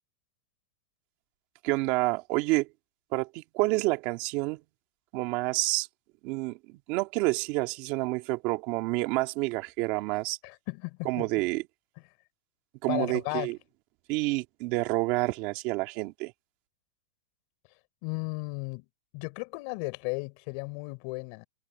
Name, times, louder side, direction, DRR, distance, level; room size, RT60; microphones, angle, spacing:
voice 1, 1.6-2.7 3.1-4.6 5.1-5.9 6.2-10.4 11.1-11.6 12.8-13.6 14.1-16.3, right 22 dB, 35° right, 1.9 m, -28 dB
voice 2, 10.4-11.4 12.9-13.5 18.0-18.9 19.1-21.4, left 32 dB, 40° left, 6.0 m, -35 dB
supercardioid pair, 165°, 4 cm